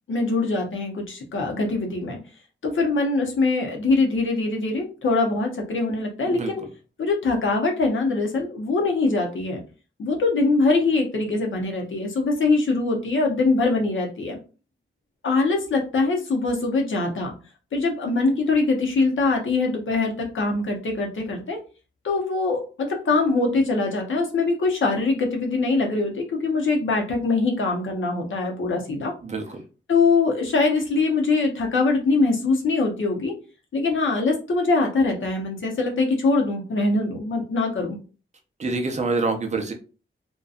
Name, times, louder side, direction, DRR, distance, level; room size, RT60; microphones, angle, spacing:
voice 1, 0.1-2.2 2.6-6.6 7.0-9.6 10.0-14.4 15.2-17.3 17.7-21.6 22.0-29.1 29.9-33.3 33.7-38.0, left 3 dB, 70° left, 1 dB, 0.7 m, -23 dB
voice 2, 29.2-29.6 38.6-39.7, right 3 dB, 35° right, 4 dB, 0.5 m, -26 dB
2.6 x 2.2 x 2.4 m, 0.34 s
wide cardioid pair, 155°, 21 cm